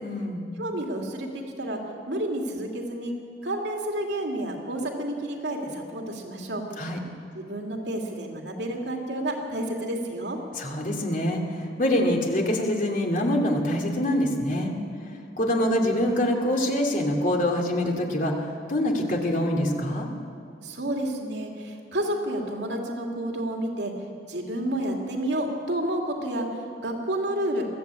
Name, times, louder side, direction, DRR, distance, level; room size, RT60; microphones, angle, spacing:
voice 1, 0.0-0.5 6.8-7.0 10.6-14.7 15.4-20.1, left 1 dB, 50° left, 1 dB, 2.8 m, -25 dB
voice 2, 0.6-1.8 2.1-3.1 3.4-6.7 7.4-10.4 20.6-23.9 24.3-26.5 26.8-27.7, right 1 dB, 85° right, 1 dB, 2.8 m, -30 dB
21.5 x 14.0 x 8.5 m, 2.4 s
head